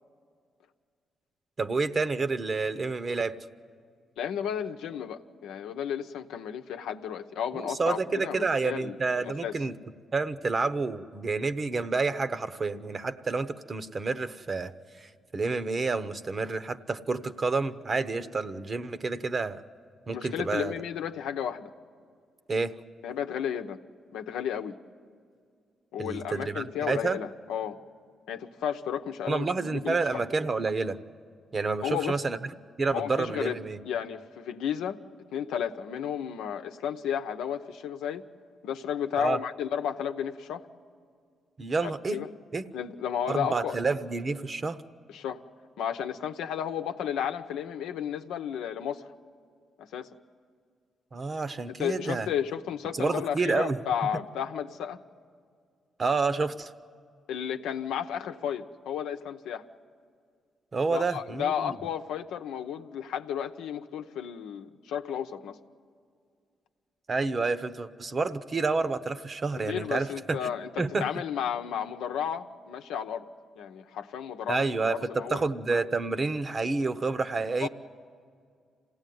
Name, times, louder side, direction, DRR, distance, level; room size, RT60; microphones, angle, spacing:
voice 1, 1.6-3.3 7.5-9.7 10.1-14.7 15.0-19.6 20.1-20.7 22.5-22.7 26.0-27.2 29.3-31.0 31.5-32.5 32.8-33.8 39.2-39.4 41.6-42.2 42.5-42.6 43.3-44.8 51.1-52.3 53.0-53.8 56.0-56.7 60.7-61.7 67.1-70.4 70.8-71.1 74.5-77.7, right 4 dB, 40° right, 12 dB, 1.0 m, -29 dB
voice 2, 4.2-9.6 20.1-21.7 23.0-23.8 24.1-24.8 25.9-27.8 28.3-30.2 31.8-32.2 32.9-33.6 33.9-35.0 35.3-38.2 38.6-40.6 41.8-42.3 42.7-43.8 45.1-45.4 45.8-49.1 49.8-50.1 51.8-55.0 57.3-59.7 60.9-65.6 69.7-73.3 73.6-75.5 77.6-77.7, left 8 dB, 90° left, 6 dB, 0.8 m, -33 dB
26.5 x 16.5 x 9.4 m, 2.2 s
cardioid pair, 70°, 0 cm